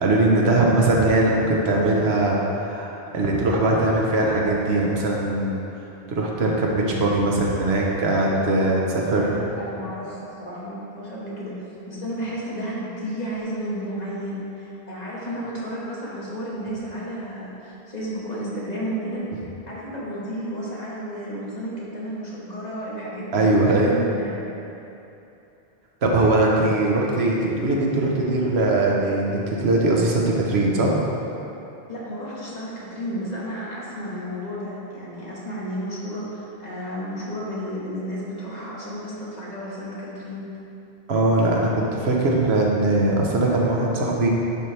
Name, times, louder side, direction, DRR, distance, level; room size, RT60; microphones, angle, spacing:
voice 1, 0.0-5.6 6.1-9.3 23.3-24.0 26.0-30.9 41.1-44.3, right 2 dB, 90° right, -2 dB, 1.2 m, -21 dB
voice 2, 8.2-11.5 11.9-19.2 19.7-24.6 31.9-40.4, equal, 40° left, -7 dB, 1.4 m, -32 dB
10.5 x 4.3 x 3.3 m, 2.9 s
omnidirectional pair, 1.0 m